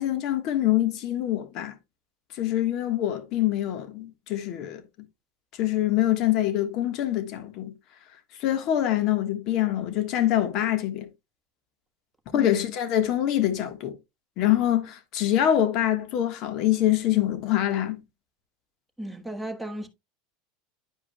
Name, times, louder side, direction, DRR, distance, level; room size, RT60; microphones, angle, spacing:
voice 1, 0.0-1.8 2.3-4.8 5.6-7.7 8.4-11.1 12.3-14.0 14.4-18.0, left 12 dB, 55° left, 1.4 m, -25 dB
voice 2, 19.0-19.9, right 1 dB, ahead, 1.4 m, -34 dB
10.5 x 5.0 x 2.3 m
supercardioid pair, 115°, 0 cm